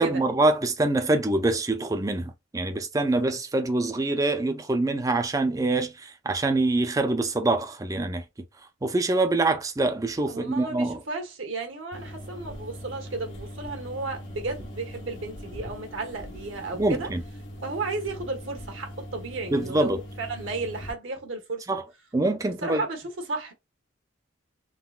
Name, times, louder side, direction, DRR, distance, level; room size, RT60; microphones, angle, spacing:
voice 1, 0.0-8.2 8.8-11.0 16.7-17.2 19.5-20.0 21.7-21.8 22.1-22.8, right 2 dB, 15° right, 0.4 m, -25 dB
voice 2, 10.3-17.1 17.6-21.6 22.4-23.5, right 3 dB, 85° right, 1.0 m, -34 dB
sound 1, 11.9-20.9, equal, 65° left, 0.9 m, -41 dB
3.8 x 2.2 x 2.3 m
head